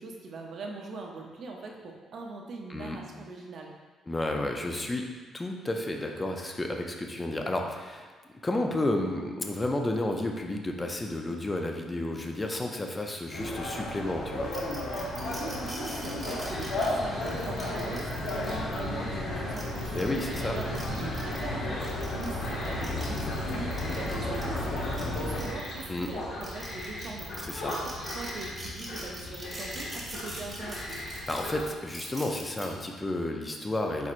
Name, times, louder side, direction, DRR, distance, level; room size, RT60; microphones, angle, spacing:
voice 1, 0.0-3.7 15.2-20.0 20.3-27.3 27.8-31.0, right 3 dB, 55° right, 0 dB, 0.6 m, -41 dB
voice 2, 4.1-5.1 5.3-8.1 8.4-14.5 19.9-20.6 25.9-26.1 27.4-27.8 31.3-34.1, left 1 dB, 15° left, 2 dB, 0.4 m, -31 dB
sound 1, 13.3-25.4, left 1 dB, 85° left, 1.1 m, -33 dB
sound 2, 14.5-18.8 19.4-21.4 21.8-26.1 26.4-32.7, right 1 dB, 10° right, 0.9 m, -43 dB
sound 3, 16.1-31.7, left 2 dB, 65° left, 1.0 m, -40 dB
4.4 x 4.2 x 2.5 m, 1.4 s
cardioid pair, 125°, 0 cm